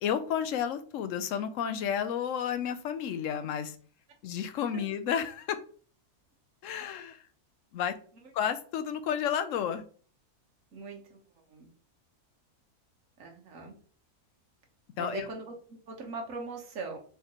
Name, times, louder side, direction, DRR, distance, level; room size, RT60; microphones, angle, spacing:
voice 1, 0.0-3.8 4.2-5.6 6.6-7.2 7.7-8.0 8.3-9.8 15.0-15.3, left 8 dB, 70° left, 9 dB, 0.8 m, -31 dB
voice 2, 10.7-11.2 11.5-11.7 13.2-13.7 15.0-17.0, right 3 dB, 60° right, 2 dB, 1.4 m, -40 dB
4.5 x 3.5 x 2.9 m, 0.43 s
omnidirectional pair, 1.6 m